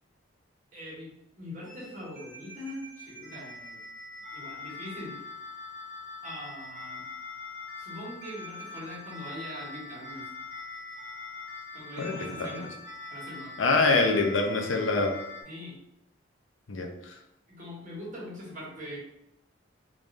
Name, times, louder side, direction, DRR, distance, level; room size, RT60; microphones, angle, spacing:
voice 1, 0.7-3.8 4.3-5.2 6.2-7.0 7.8-10.2 11.7-12.7 13.1-13.5 15.4-15.7 17.5-19.0, left 1 dB, 45° right, -6 dB, 1.4 m, -42 dB
sound 1, 1.6-15.4, left 3 dB, 65° right, 1.4 m, -43 dB
voice 2, 12.0-12.7 13.6-15.1 16.7-17.1, left 3 dB, 85° left, 3 dB, 0.6 m, -25 dB
3.6 x 2.6 x 3.2 m, 0.82 s
head